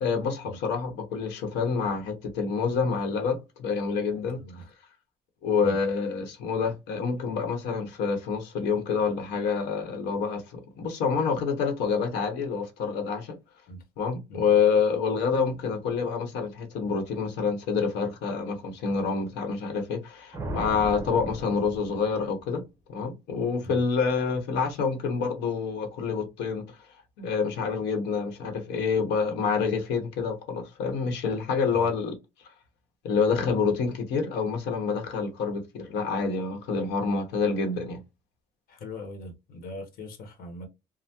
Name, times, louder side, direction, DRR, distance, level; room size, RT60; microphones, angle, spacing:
voice 1, 0.0-4.4 5.4-13.4 14.0-22.6 22.9-26.7 27.2-32.2 33.0-38.0, left 5 dB, 90° left, 1.0 m, -27 dB
sound 1, 20.3-22.6, right 1 dB, 15° right, 0.7 m, -37 dB
voice 2, 38.7-40.7, left 1 dB, 60° left, 1.1 m, -41 dB
3.3 x 2.1 x 2.8 m
cardioid pair, 110°, 17 cm